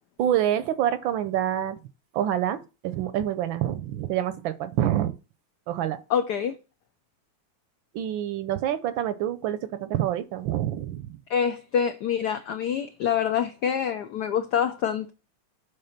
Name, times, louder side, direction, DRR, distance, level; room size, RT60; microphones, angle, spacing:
voice 1, 0.2-1.8 2.1-5.1 5.7-6.0 7.9-11.2, right 11 dB, 75° right, 1.2 m, -27 dB
voice 2, 6.1-6.5 11.3-15.1, left 8 dB, 90° left, 0.9 m, -26 dB
6.6 x 4.0 x 5.8 m
omnidirectional pair, 2.4 m